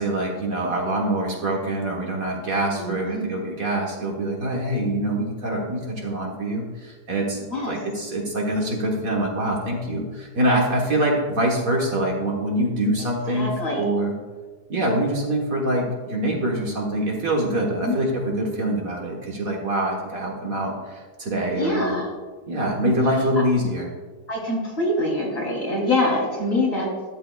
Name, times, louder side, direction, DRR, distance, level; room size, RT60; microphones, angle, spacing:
voice 1, 0.0-13.5 13.8-14.1 14.7-21.9 22.5-23.9, right 1 dB, 55° right, -1 dB, 1.6 m, -24 dB
voice 2, 2.8-3.3 7.5-7.7 13.3-13.9 17.8-18.0 21.4-22.1 23.0-23.4 24.3-26.9, left 1 dB, 35° left, -4 dB, 3.3 m, -25 dB
12.5 x 10.5 x 2.3 m, 1.4 s
omnidirectional pair, 1.9 m